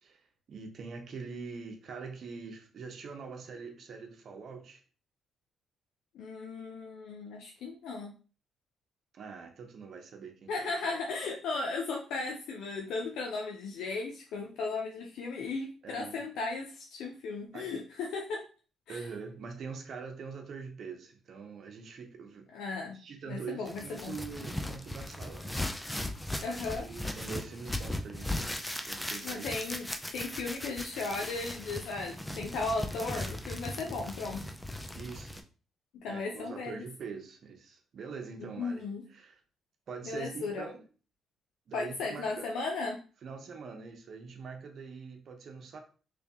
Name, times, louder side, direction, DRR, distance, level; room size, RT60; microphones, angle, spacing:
voice 1, 0.0-4.8 9.1-11.0 15.8-16.2 17.5-17.8 18.9-22.5 22.8-25.6 26.3-28.4 28.9-29.5 34.9-35.4 36.1-39.4 39.9-40.9 41.7-42.5 43.2-45.8, right 5 dB, 60° right, 0.9 m, -44 dB
voice 2, 6.1-8.1 10.5-18.4 18.9-19.1 22.5-23.0 23.3-24.2 26.4-26.8 29.2-34.5 35.9-36.8 38.4-39.0 40.0-40.6 41.7-43.0, left 3 dB, 80° left, 0.6 m, -36 dB
sound 1, 23.7-35.4, left 1 dB, 10° left, 0.5 m, -38 dB
3.3 x 2.7 x 3.5 m
cardioid pair, 90°, 0 cm